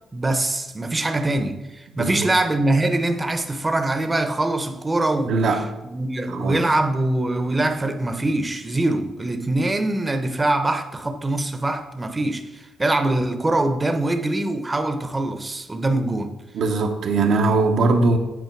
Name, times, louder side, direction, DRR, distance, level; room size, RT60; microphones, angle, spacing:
voice 1, 0.1-5.6 5.9-16.3, right 2 dB, 20° right, 0.8 m, -23 dB
voice 2, 2.0-2.3 5.3-5.7 6.4-6.6 16.5-18.2, right 3 dB, 70° right, 0.9 m, -20 dB
8.3 x 4.6 x 4.6 m
cardioid pair, 95°, 0 cm